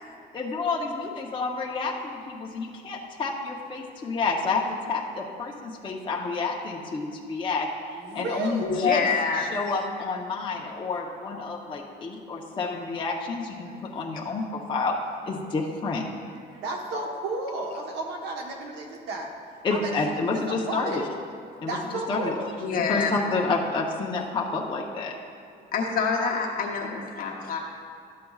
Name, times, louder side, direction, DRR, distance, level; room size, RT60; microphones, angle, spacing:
voice 1, 0.3-4.6 4.9-7.7 8.1-9.0 9.5-14.9 15.3-16.0 19.6-21.1 21.6-21.8 22.1-22.3 22.9-25.1, left 4 dB, 30° left, -3 dB, 0.8 m, -29 dB
voice 2, 7.9-8.7 13.7-13.8 16.3-19.3 19.7-21.0 21.7-22.5 25.5-25.7, right 2 dB, 80° right, 1 dB, 1.1 m, -33 dB
voice 3, 8.6-9.6 22.6-23.1 25.7-27.6, left 5 dB, 60° left, -1 dB, 1.0 m, -26 dB
12.5 x 7.5 x 2.4 m, 2.4 s
cardioid pair, 110°, 17 cm